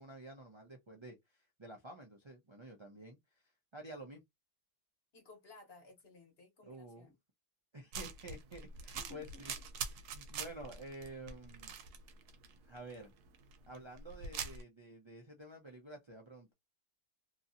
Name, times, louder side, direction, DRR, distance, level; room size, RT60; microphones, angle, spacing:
voice 1, 0.0-3.2 3.7-4.2 6.7-7.1 7.7-9.5 9.8-11.7 12.7-13.1 13.7-16.5, right 1 dB, 50° right, 0.3 m, -50 dB
voice 2, 5.1-7.2 8.9-9.2, left 3 dB, 45° left, 1.2 m, -58 dB
sound 1, 7.9-14.6, right 5 dB, 85° right, 1.2 m, -45 dB
2.9 x 2.7 x 2.6 m
omnidirectional pair, 1.6 m